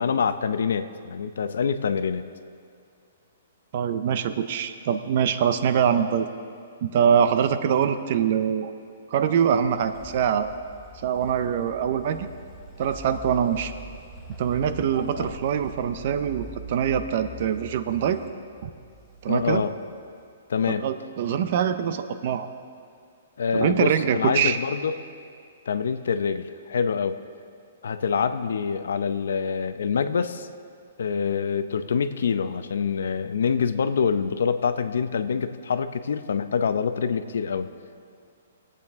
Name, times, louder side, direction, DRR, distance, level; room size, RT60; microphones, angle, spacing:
voice 1, 0.0-2.2 15.1-15.3 19.3-19.7 20.5-20.8 23.4-24.9 25.7-27.2 27.8-30.5 31.0-37.7, left 6 dB, 65° left, 11 dB, 0.6 m, -25 dB
voice 2, 3.7-6.3 6.8-8.8 9.1-10.5 11.0-12.3 12.8-13.7 14.4-18.2 18.6-18.7 19.2-19.6 20.7-22.5 23.5-24.6, right 8 dB, 35° right, 10 dB, 0.4 m, -24 dB
sound 1, 9.4-20.2, right 1 dB, 5° left, 0.8 m, -43 dB
20.5 x 8.5 x 3.5 m, 2.3 s
hypercardioid pair, 180°, 0 cm